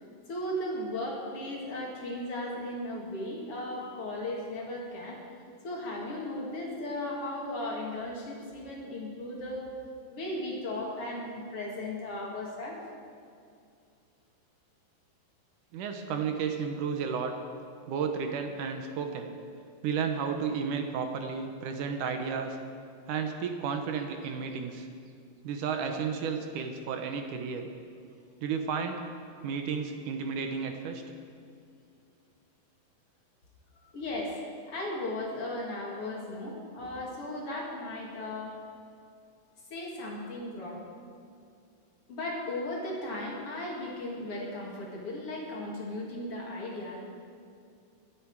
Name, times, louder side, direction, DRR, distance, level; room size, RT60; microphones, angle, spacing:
voice 1, 0.3-5.2 5.6-9.7 10.1-12.8 33.9-34.4 34.7-38.6 39.7-40.8 42.1-47.0, left 1 dB, 45° left, -2 dB, 2.6 m, -36 dB
voice 2, 15.7-17.3 17.9-19.3 19.8-22.6 23.1-24.9 25.4-27.7 28.4-29.0 29.4-31.0, right 6 dB, 70° right, 5 dB, 2.3 m, -32 dB
22.5 x 9.4 x 4.7 m, 2.4 s
omnidirectional pair, 4.1 m